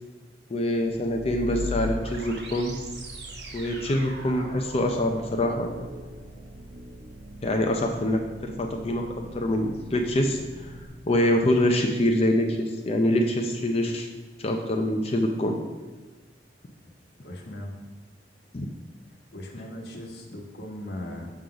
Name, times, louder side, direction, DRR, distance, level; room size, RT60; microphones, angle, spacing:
voice 1, 0.5-2.8 3.5-5.7 7.4-10.7 11.1-14.1 14.4-15.6 18.5-18.7, left 1 dB, 35° left, 3 dB, 0.5 m, -25 dB
sound 1, 0.9-10.9, left 1 dB, 70° right, 1.0 m, -39 dB
voice 2, 17.2-17.8 19.3-21.3, left 1 dB, 65° left, 1 dB, 1.2 m, -38 dB
6.4 x 3.9 x 5.7 m, 1.4 s
head